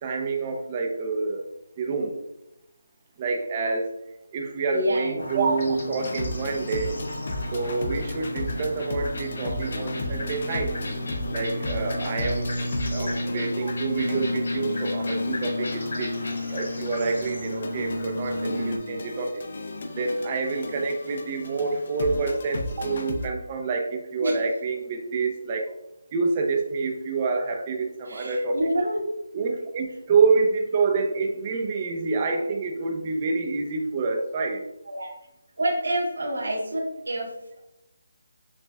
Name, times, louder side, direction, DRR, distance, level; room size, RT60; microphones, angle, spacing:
voice 1, 0.0-1.5 1.8-2.2 3.2-3.9 4.3-7.0 7.5-10.8 11.3-16.2 16.5-19.4 19.9-25.8 26.1-28.6 29.3-34.6, right 4 dB, 25° right, 3 dB, 0.5 m, -27 dB
voice 2, 4.7-5.4 12.9-13.3 24.2-24.4 28.0-29.1 34.8-35.1 35.6-37.6, right 1 dB, 85° right, -4 dB, 1.5 m, -28 dB
sound 1, 5.2-18.8, left 1 dB, 65° left, 1.1 m, -32 dB
sound 2, 6.0-23.3, left 2 dB, 45° left, 0.5 m, -35 dB
6.4 x 2.3 x 2.3 m, 0.85 s
figure-of-eight pair, 170°, 0 cm